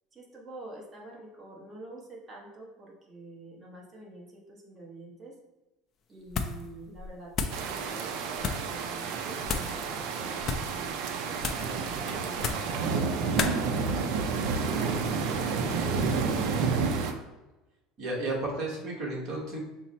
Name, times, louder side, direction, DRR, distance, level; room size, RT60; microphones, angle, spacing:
voice 1, 0.1-5.3 6.1-10.9 11.1-14.1 14.7-17.0, right 1 dB, 20° right, -2 dB, 0.9 m, -47 dB
sound 1, 6.3-6.7 7.0-7.7 8.4-8.7 9.4-9.8 10.4-10.8 11.4-11.7 12.4-12.8 13.4-13.6, left 5 dB, 30° left, 0.3 m, -32 dB
sound 2, 7.5-17.1, right 5 dB, 60° right, 0.4 m, -30 dB
voice 2, 18.0-19.6, right 2 dB, 40° right, -2 dB, 1.1 m, -33 dB
5.7 x 2.0 x 4.1 m, 1.1 s
cardioid pair, 170°, 0 cm